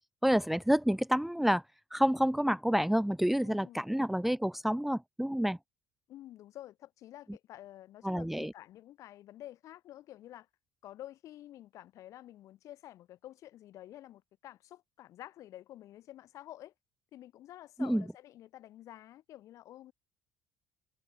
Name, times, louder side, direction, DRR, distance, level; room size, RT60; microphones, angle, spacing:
voice 1, 0.2-1.6 1.9-5.6 8.0-8.5 17.8-18.0, equal, 5° right, 0.6 m, -28 dB
voice 2, 3.4-3.8 6.1-10.5 10.8-16.7 17.1-19.9, left 13 dB, 65° left, 5.1 m, -50 dB
hypercardioid pair, 65°, 6 cm